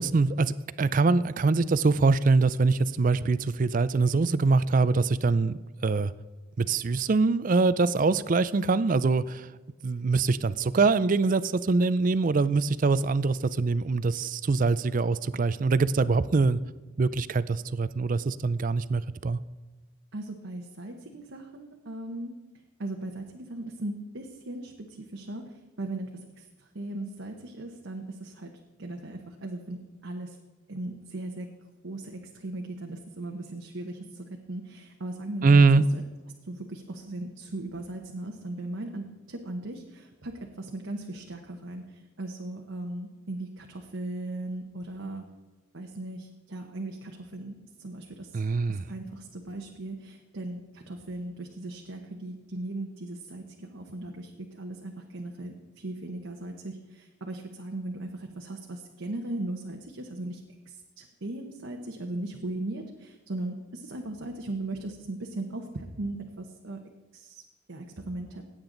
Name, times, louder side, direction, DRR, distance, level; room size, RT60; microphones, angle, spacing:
voice 1, 0.0-6.1 6.6-9.5 9.8-16.6 17.0-19.4 35.4-35.8 48.3-48.8, right 4 dB, 40° right, 16 dB, 0.4 m, -24 dB
voice 2, 20.1-22.4 22.8-26.1 26.4-28.5 28.8-30.4 30.7-31.5 31.8-35.7 35.9-36.0 36.4-45.2 45.7-48.4 48.7-66.8 67.1-68.4, right 2 dB, 65° right, 2 dB, 1.0 m, -38 dB
16.0 x 8.8 x 3.9 m, 1.2 s
head